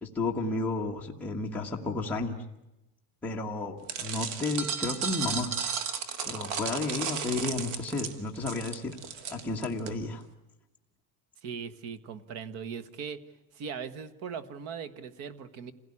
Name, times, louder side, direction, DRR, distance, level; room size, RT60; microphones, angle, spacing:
voice 1, 0.0-2.4 3.2-5.5 6.2-8.9 9.3-10.2, left 3 dB, 5° left, -2 dB, 1.5 m, -32 dB
sound 1, 3.9-9.9, right 6 dB, 70° right, 2.4 m, -34 dB
voice 2, 11.4-13.2 13.5-15.7, right 6 dB, 50° right, 15 dB, 1.5 m, -39 dB
27.0 x 17.0 x 9.9 m, 0.97 s
cardioid pair, 175°, 31 cm